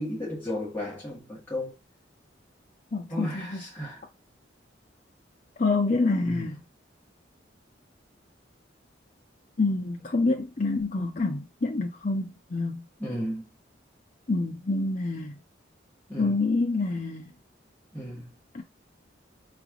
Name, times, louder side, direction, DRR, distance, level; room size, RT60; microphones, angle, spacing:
voice 1, 0.0-1.7 3.1-4.0 6.2-6.4 13.0-13.4 16.1-16.3 17.9-18.3, left 1 dB, 10° left, 1.6 m, -34 dB
voice 2, 2.9-3.9 5.6-6.6 9.6-12.8 14.3-15.4 16.2-17.3 18.5-18.6, left 3 dB, 45° left, 0.6 m, -27 dB
3.9 x 3.2 x 2.4 m
head